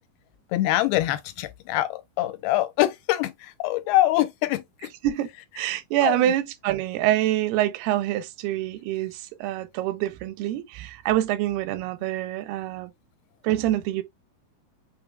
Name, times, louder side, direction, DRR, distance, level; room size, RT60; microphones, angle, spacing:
voice 1, 0.5-4.9 6.0-6.3, left 15 dB, 85° left, 2.5 m, -24 dB
voice 2, 5.6-12.9 13.4-14.0, right 13 dB, 90° right, 2.6 m, -26 dB
6.1 x 3.4 x 2.2 m
omnidirectional pair, 4.4 m